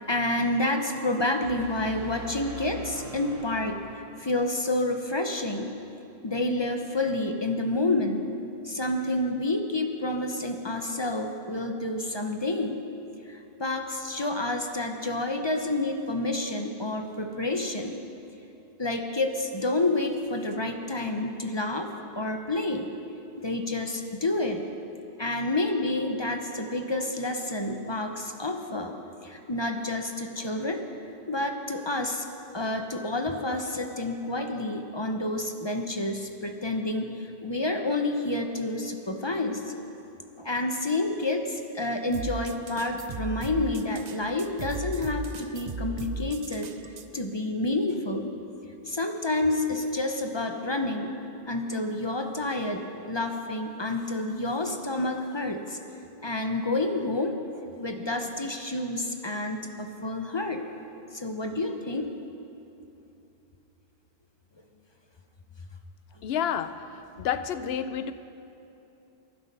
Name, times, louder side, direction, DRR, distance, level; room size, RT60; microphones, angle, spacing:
voice 1, 0.1-3.8 4.2-5.8 6.2-8.3 8.6-12.8 13.2-18.0 18.8-22.9 23.4-24.7 25.2-29.0 29.2-30.8 31.3-32.3 32.5-39.7 40.4-46.7 47.1-48.3 48.9-51.1 51.5-55.8 56.2-60.6 61.1-62.1, left 2 dB, 30° left, 5 dB, 0.7 m, -29 dB
sound 1, 1.4-4.3, right 3 dB, 70° right, 1.6 m, -42 dB
sound 2, 42.1-47.1, right 3 dB, 45° right, 0.7 m, -36 dB
voice 2, 66.2-66.9 67.2-68.1, left 9 dB, 75° left, 12 dB, 0.8 m, -29 dB
22.5 x 7.8 x 5.4 m, 2.9 s
omnidirectional pair, 1.1 m